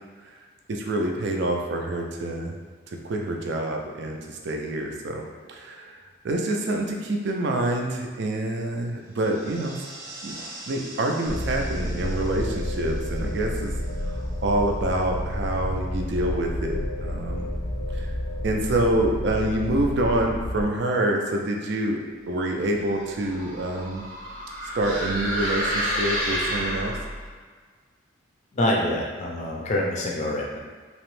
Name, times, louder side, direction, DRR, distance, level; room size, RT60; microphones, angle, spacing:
voice 1, 0.7-2.6 2.9-9.8 10.2-10.3 10.7-13.7 14.0-17.5 17.9-18.1 18.4-22.0 22.3-24.0 24.7-26.9, right 1 dB, 60° right, 2 dB, 0.4 m, -27 dB
sound 1, 9.0-14.8, right 2 dB, 15° right, 0.7 m, -44 dB
sound 2, 11.3-20.6, left 1 dB, 90° left, 0.7 m, -30 dB
sound 3, 22.8-27.3, equal, 80° right, 0.8 m, -29 dB
voice 2, 28.5-30.6, left 1 dB, 35° left, -1 dB, 0.4 m, -26 dB
2.9 x 2.0 x 3.0 m, 1.6 s
head